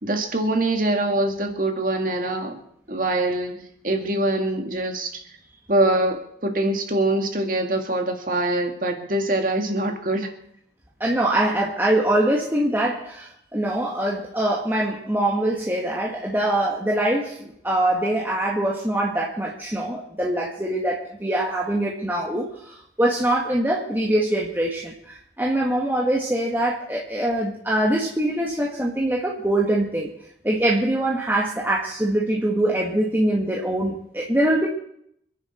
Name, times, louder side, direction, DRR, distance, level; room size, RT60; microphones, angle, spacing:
voice 1, 0.0-2.6 2.9-5.2 5.7-10.3, right 1 dB, 45° right, 4 dB, 2.2 m, -24 dB
voice 2, 11.0-30.1 30.4-34.7, right 1 dB, 10° right, -3 dB, 1.7 m, -23 dB
26.5 x 10.5 x 4.5 m, 0.72 s
head